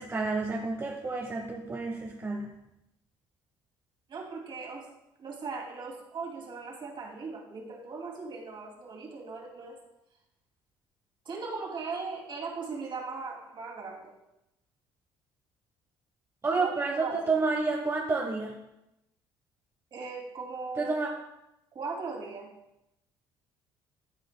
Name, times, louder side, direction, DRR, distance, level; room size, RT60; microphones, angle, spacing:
voice 1, 0.0-2.5 16.4-18.5 20.8-21.1, right 3 dB, 25° right, 0 dB, 1.0 m, -30 dB
voice 2, 4.1-4.9 5.2-9.7 11.3-14.1 16.6-17.3 19.9-20.9 21.7-22.5, right 4 dB, 50° right, -1 dB, 2.5 m, -38 dB
13.0 x 4.9 x 2.2 m, 0.89 s
supercardioid pair, 70°, 11 cm